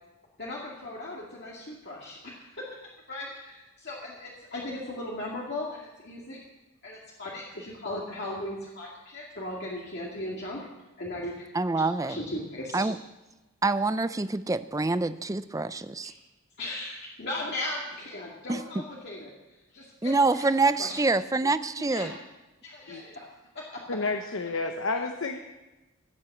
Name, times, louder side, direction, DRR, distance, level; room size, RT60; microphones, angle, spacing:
voice 1, 0.4-2.6 3.1-5.8 6.0-6.4 6.8-10.7 11.0-11.3 12.1-12.9 16.0-16.2 16.6-19.3 19.7-20.5 20.8-21.0 21.9-22.1 22.6-23.3 23.5-24.0, left 1 dB, 50° left, -4 dB, 2.2 m, -37 dB
voice 2, 11.5-12.2 12.7-13.0 13.6-16.1 18.5-18.6 20.0-22.1, right 3 dB, 15° right, 13 dB, 0.4 m, -26 dB
voice 3, 23.9-25.4, left 3 dB, 70° left, 5 dB, 0.9 m, -30 dB
17.0 x 9.2 x 7.8 m, 1.1 s
head